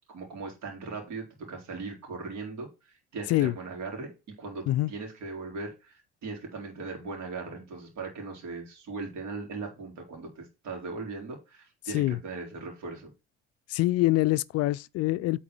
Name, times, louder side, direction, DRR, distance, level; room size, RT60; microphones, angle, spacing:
voice 1, 0.1-13.1, right 4 dB, 60° right, 3.8 m, -39 dB
voice 2, 13.7-15.4, left 17 dB, 50° left, 0.4 m, -25 dB
8.5 x 4.3 x 6.1 m
hypercardioid pair, 55°, 32 cm